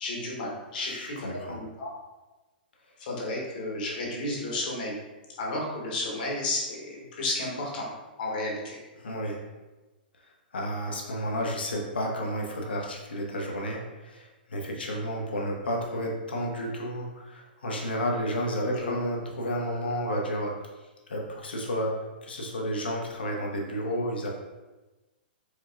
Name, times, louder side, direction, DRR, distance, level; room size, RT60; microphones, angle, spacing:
voice 1, 0.0-1.9 3.0-5.0 5.4-7.9 8.2-8.8 18.7-18.9, left 2 dB, 60° left, -2 dB, 1.1 m, -32 dB
voice 2, 0.7-1.6 9.0-9.4 10.5-20.5 21.1-21.9 22.2-24.3, equal, 80° left, 0 dB, 0.7 m, -31 dB
4.6 x 2.2 x 2.3 m, 1.1 s
hypercardioid pair, 115°, 5 cm